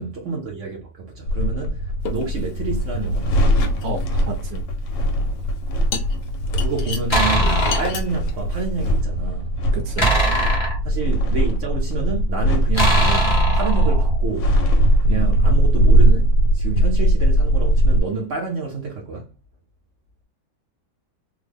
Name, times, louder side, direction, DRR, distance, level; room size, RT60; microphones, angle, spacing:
voice 1, 0.0-3.7 6.6-9.5 10.8-14.5 15.0-19.3, right 4 dB, 60° right, 0.8 m, -28 dB
sound 1, 1.3-18.0, right 1 dB, 90° left, 1.4 m, -20 dB
sound 2, 2.0-3.0 3.3-4.4 5.2-5.3 5.9-9.0, left 5 dB, 70° left, 1.3 m, -31 dB
voice 2, 3.8-4.6 9.7-10.2 15.1-15.3, right 3 dB, 80° right, 1.3 m, -31 dB
sound 3, 7.1-8.0 10.0-11.5 12.7-14.2, right 1 dB, 20° left, 0.8 m, -21 dB
3.5 x 2.1 x 3.3 m
omnidirectional pair, 1.9 m